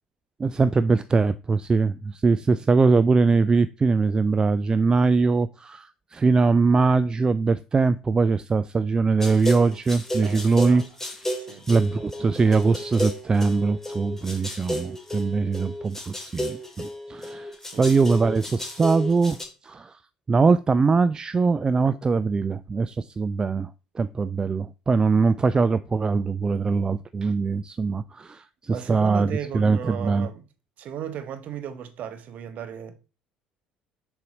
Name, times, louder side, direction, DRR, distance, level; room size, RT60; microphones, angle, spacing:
voice 1, 0.4-10.8 11.7-19.4 19.6-20.0 20.3-23.7 24.0-30.3, right 4 dB, 20° right, 0.3 m, -22 dB
sound 1, 9.2-19.4, equal, 10° left, 2.2 m, -33 dB
voice 2, 10.2-10.8 11.4-11.7 17.7-17.9 28.7-30.4 30.8-33.0, right 8 dB, 45° right, 0.9 m, -36 dB
6.7 x 4.8 x 4.0 m
figure-of-eight pair, 55°, 3 cm